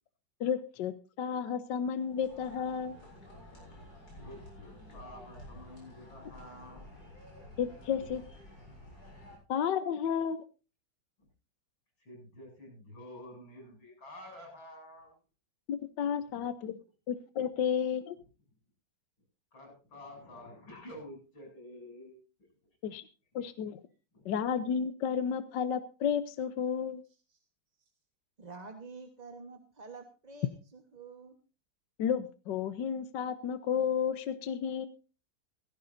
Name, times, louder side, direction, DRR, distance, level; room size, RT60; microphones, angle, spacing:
voice 1, 0.4-3.0 7.6-8.2 9.5-10.4 15.7-16.8 17.1-18.2 22.8-23.0 23.3-23.8 24.2-27.0 32.0-34.9, left 7 dB, 70° left, 12 dB, 1.4 m, -32 dB
sound 1, 1.9-9.4, left 1 dB, 50° left, 8.1 m, -51 dB
voice 2, 4.1-6.8 12.0-15.2 16.4-16.5 19.5-22.2 23.4-23.5 24.1-24.3, left 1 dB, 85° left, 2 dB, 8.9 m, -49 dB
voice 3, 28.4-31.3, right 4 dB, 25° right, 5 dB, 1.2 m, -48 dB
17.0 x 15.5 x 2.6 m, 0.33 s
omnidirectional pair, 2.1 m